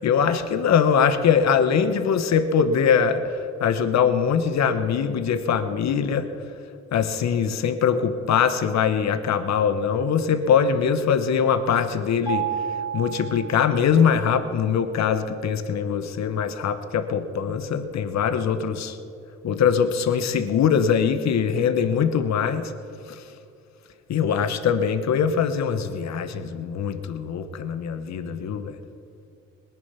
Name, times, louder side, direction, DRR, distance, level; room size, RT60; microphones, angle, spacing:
voice 1, 0.0-3.2 3.6-6.3 6.9-12.5 12.9-19.0 19.4-22.6 23.1-23.2 24.1-28.8, left 7 dB, 65° left, 10 dB, 1.2 m, -22 dB
Mallet percussion, 12.3-14.2, right 8 dB, 15° right, 2.6 m, -31 dB
19.5 x 10.5 x 5.8 m, 2.6 s
cardioid pair, 90°, 30 cm